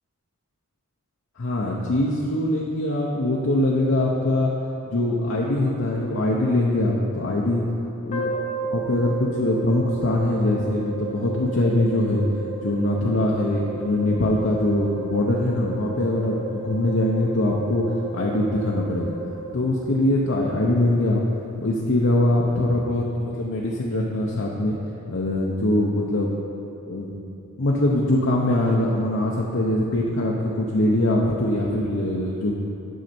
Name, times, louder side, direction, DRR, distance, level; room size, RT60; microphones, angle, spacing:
voice 1, 1.4-4.5 4.9-7.6 8.1-8.4 8.7-12.2 12.6-17.9 18.1-19.2 19.5-21.2 21.6-24.7 25.1-26.3 26.9-32.5, left 1 dB, 60° left, -3 dB, 0.7 m, -22 dB
sound 1, 8.1-20.3, right 4 dB, 35° left, 1.0 m, -34 dB
9.3 x 6.4 x 4.4 m, 2.8 s
head